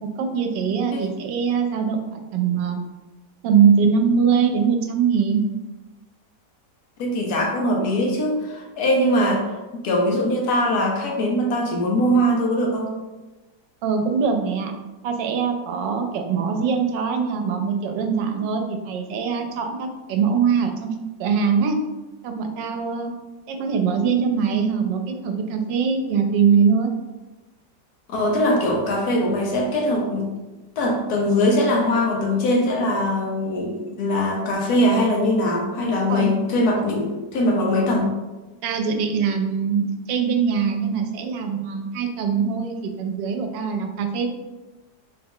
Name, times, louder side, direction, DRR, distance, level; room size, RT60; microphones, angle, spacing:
voice 1, 0.0-2.8 3.4-5.5 13.8-14.7 15.0-21.8 22.2-23.1 23.5-26.9 36.1-36.3 38.6-44.3, right 6 dB, 85° right, 5 dB, 1.2 m, -22 dB
voice 2, 7.0-9.6 9.8-13.0 28.1-30.3 30.8-38.1, left 1 dB, 65° left, 0 dB, 1.1 m, -21 dB
4.1 x 2.3 x 3.5 m, 1.1 s
omnidirectional pair, 1.9 m